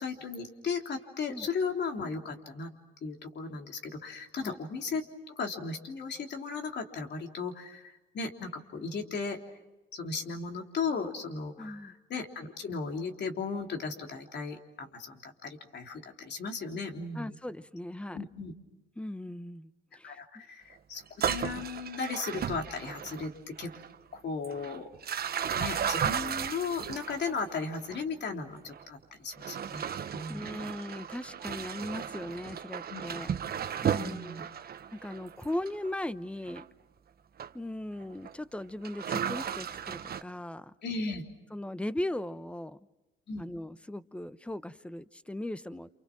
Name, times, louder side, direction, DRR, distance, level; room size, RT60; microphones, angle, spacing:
voice 1, 0.0-2.7 3.0-9.4 9.9-17.3 18.1-18.5 20.0-23.7 24.1-24.9 25.5-29.8 30.1-30.4 32.9-33.0 34.0-34.4 40.8-41.2 43.3-43.4, left 4 dB, 60° left, 3 dB, 3.5 m, -36 dB
voice 2, 11.6-11.9 17.1-18.2 19.0-20.4 30.3-33.3 33.8-36.6 37.5-40.7 41.5-42.8 43.4-45.9, left 1 dB, 5° left, 14 dB, 0.9 m, -38 dB
sound 1, 21.1-23.3 23.6-24.0 24.4-28.0 28.7-28.8 29.3-35.9 36.5-36.7 37.4-37.5 38.0-38.3 38.8-40.2, right 8 dB, 50° right, 1.0 m, -35 dB
29.0 x 28.5 x 6.2 m, 1.0 s
cardioid pair, 90°, 20 cm